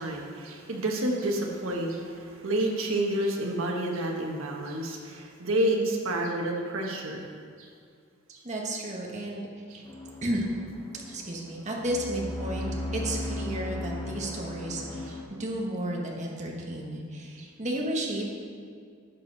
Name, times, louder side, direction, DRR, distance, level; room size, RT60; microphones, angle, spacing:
voice 1, 0.0-7.3 7.6-7.7 8.3-8.4, right 1 dB, 80° right, 0 dB, 1.4 m, -29 dB
voice 2, 8.4-9.8 10.2-10.4 11.1-18.2, right 1 dB, 35° right, -1 dB, 1.5 m, -33 dB
sound 1, 9.8-15.2, left 1 dB, 20° left, 1.3 m, -36 dB
11.5 x 7.2 x 4.1 m, 2.2 s
head